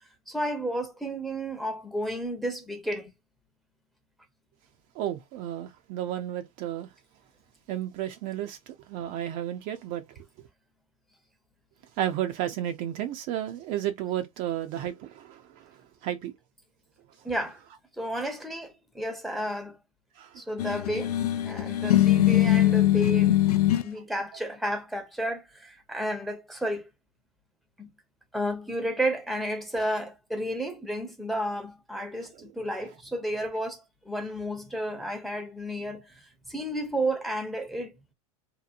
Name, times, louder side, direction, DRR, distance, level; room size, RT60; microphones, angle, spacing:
voice 1, 0.3-3.1 17.2-17.6 18.0-19.8 20.4-21.1 21.4-23.4 23.8-26.9 27.8-27.9 28.3-36.1 36.5-37.9, right 1 dB, ahead, 0.7 m, -32 dB
voice 2, 5.0-6.9 7.7-10.0 12.0-15.6 16.0-16.3 20.2-20.3 24.0-24.1, right 11 dB, 45° right, 0.5 m, -32 dB
sound 1, 20.6-23.9, left 13 dB, 90° left, 0.4 m, -22 dB
2.8 x 2.1 x 2.5 m
hypercardioid pair, 110°, 19 cm